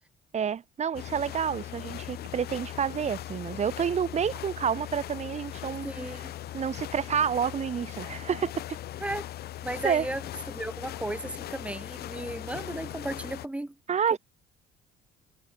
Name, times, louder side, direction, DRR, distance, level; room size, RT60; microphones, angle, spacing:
voice 1, 0.3-5.9 6.5-8.5 9.8-10.0 13.9-14.2, right 7 dB, 40° right, 3.0 m, -29 dB
sound 1, 0.9-13.5, left 13 dB, 70° left, 4.0 m, -39 dB
voice 2, 5.8-6.3 9.0-9.3 9.6-13.7 14.1-14.2, right 1 dB, 5° right, 2.8 m, -35 dB
cardioid pair, 110°, 17 cm